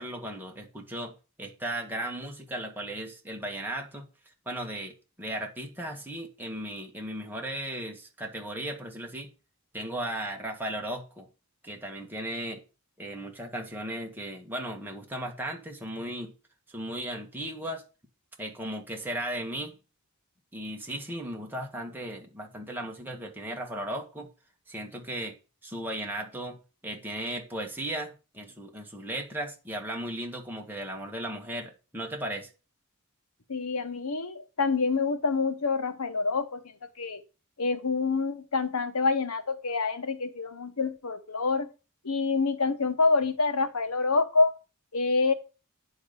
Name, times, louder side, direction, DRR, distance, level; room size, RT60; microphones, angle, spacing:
voice 1, 0.0-4.1 4.5-9.3 9.7-11.3 11.6-12.6 13.0-16.3 16.7-17.8 18.4-19.7 20.5-24.3 24.7-25.4 25.6-26.6 26.8-32.5, right 1 dB, 10° right, 1.7 m, -36 dB
voice 2, 33.5-36.6 37.0-37.2 37.6-41.7 42.0-44.5 44.9-45.3, left 4 dB, 80° left, 1.2 m, -27 dB
9.9 x 4.1 x 6.8 m
head